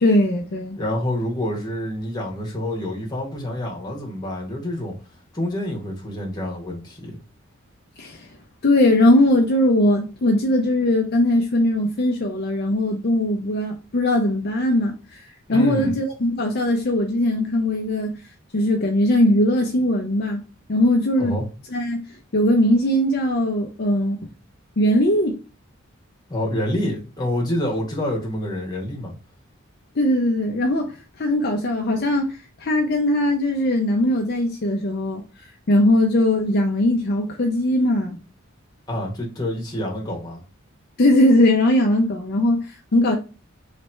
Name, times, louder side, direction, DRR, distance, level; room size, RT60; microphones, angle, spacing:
voice 1, 0.0-0.8 8.0-8.3 8.6-18.2 18.5-20.4 20.7-21.4 21.7-22.0 22.3-24.3 24.8-25.4 30.0-35.2 35.7-38.2 41.0-43.2, left 1 dB, 50° left, 0.6 m, -20 dB
voice 2, 0.8-4.9 5.3-7.2 15.5-15.9 21.2-21.5 26.3-29.1 38.9-40.4, left 1 dB, 20° left, 1.4 m, -27 dB
3.2 x 3.1 x 4.4 m
head